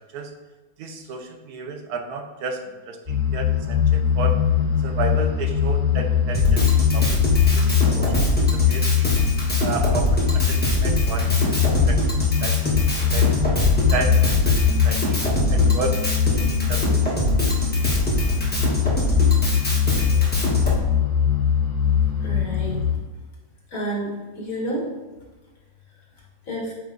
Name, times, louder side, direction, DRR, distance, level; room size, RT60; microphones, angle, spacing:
voice 1, 0.8-4.4 4.8-8.2 8.5-9.1 9.6-11.6 11.9-12.0 12.4-13.3 13.9-14.2 14.4-15.2 15.5-16.0 16.3-17.1, right 4 dB, 85° right, 5 dB, 1.3 m, -32 dB
sound 1, 3.1-22.9, left 8 dB, 35° right, 2.5 m, -22 dB
Drum kit, 6.3-20.8, left 1 dB, 5° left, 1.1 m, -23 dB
voice 2, 22.2-22.8 23.7-24.9 26.4-26.7, right 1 dB, 65° left, -3 dB, 2.2 m, -29 dB
8.3 x 3.5 x 3.9 m, 1.2 s
omnidirectional pair, 1.6 m